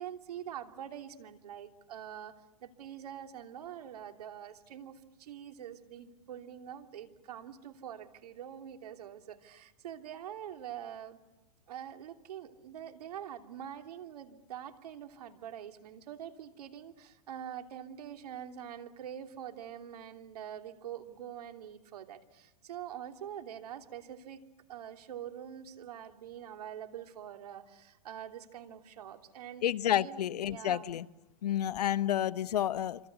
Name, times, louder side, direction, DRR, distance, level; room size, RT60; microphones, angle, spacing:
voice 1, 0.0-11.2 11.7-24.4 24.7-29.7 30.0-30.9, right 10 dB, 70° right, 7 dB, 3.1 m, -45 dB
voice 2, 29.6-31.0 31.4-33.0, left 11 dB, 80° left, 14 dB, 1.0 m, -30 dB
27.0 x 26.5 x 8.1 m, 1.0 s
hypercardioid pair, 140°, 20 cm